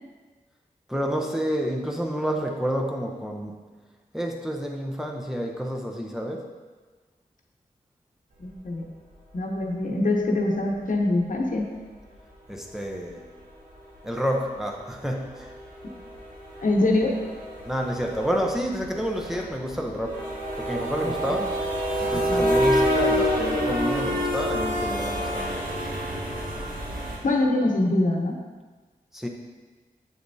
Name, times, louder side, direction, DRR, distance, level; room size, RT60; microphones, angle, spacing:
voice 1, 0.9-3.7 4.1-6.5 12.5-13.3 14.0-15.5 17.6-20.3 20.5-21.6 22.0-25.6 29.1-29.3, equal, 5° right, 0 dB, 0.7 m, -29 dB
voice 2, 8.4-8.8 9.3-11.6 16.6-17.2 21.0-21.4 22.1-22.4 27.2-28.4, left 2 dB, 60° left, 1 dB, 0.9 m, -24 dB
sound 1, 10.7-10.8 12.5-12.7 13.0-13.1 13.4-13.6 13.9-14.0 14.3-27.2, equal, 65° right, 1.7 m, -28 dB
7.4 x 6.7 x 2.7 m, 1.3 s
wide cardioid pair, 85°, 15 cm